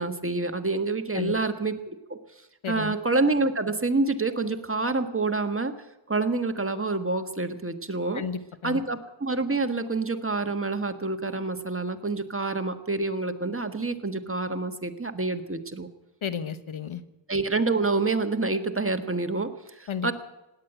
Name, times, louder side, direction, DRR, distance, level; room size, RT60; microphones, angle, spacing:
voice 1, 0.0-2.2 2.7-5.7 6.1-8.2 8.6-15.9 17.3-20.1, right 3 dB, 25° right, 8 dB, 1.5 m, -27 dB
voice 2, 2.6-2.9 8.1-8.8 16.2-17.0 19.9-20.1, left 7 dB, 75° left, 13 dB, 1.1 m, -32 dB
17.0 x 10.5 x 8.0 m, 0.95 s
wide cardioid pair, 55°, 48 cm